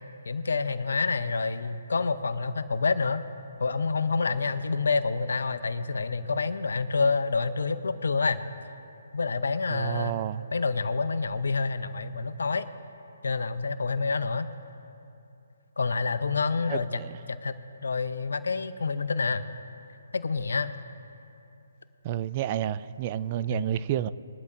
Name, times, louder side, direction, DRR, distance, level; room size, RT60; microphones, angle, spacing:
voice 1, 0.2-3.2 3.6-8.4 9.1-10.2 10.5-12.7 13.2-14.5 15.8-17.0 17.3-19.5 20.1-20.7 23.5-23.8, left 4 dB, 70° left, 12 dB, 0.7 m, -28 dB
voice 2, 9.7-10.4 16.7-17.2 22.0-24.1, right 11 dB, 35° right, 15 dB, 0.4 m, -30 dB
21.5 x 12.0 x 2.6 m, 2.8 s
figure-of-eight pair, 140°, 0 cm